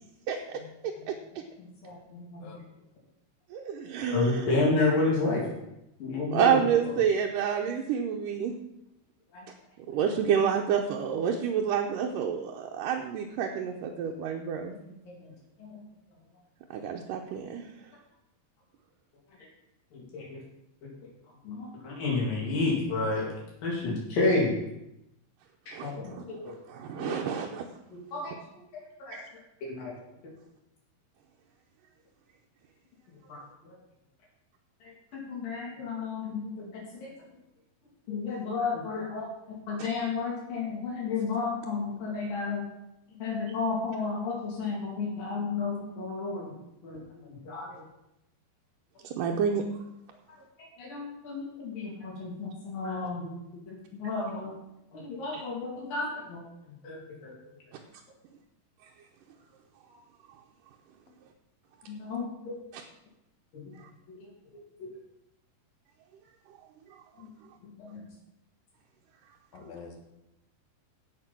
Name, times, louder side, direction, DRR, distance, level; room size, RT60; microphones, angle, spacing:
voice 1, 0.3-0.6 1.1-1.2 3.5-4.2 6.3-8.6 9.9-14.8 16.7-17.6 25.7-27.7 29.1-29.2 39.8-39.9 49.0-49.6 55.3-55.4 62.7-62.8, right 7 dB, 75° right, 1 dB, 2.4 m, -29 dB
voice 2, 1.6-2.5 4.1-5.4 6.0-6.9 9.3-9.5 9.9-10.0 14.8-15.3 15.6-15.8 19.9-20.4 20.8-20.9 21.4-23.3 23.6-24.5 25.7-26.5 27.0-27.2 27.9-28.3 28.7-29.2 29.6-29.9 33.3-33.4 34.8-37.1 38.1-42.6 43.1-46.5 46.8-47.0 47.3-47.8 50.8-53.3 53.7-54.5 54.9-56.4 56.8-57.3 61.9-62.5 63.5-63.7 64.2-64.9 67.2-67.3 67.8-68.0, left 3 dB, 70° left, -4 dB, 4.8 m, -31 dB
voice 3, 69.5-70.0, left 5 dB, 55° left, 3 dB, 2.5 m, -45 dB
15.5 x 5.7 x 6.1 m, 0.87 s
omnidirectional pair, 4.1 m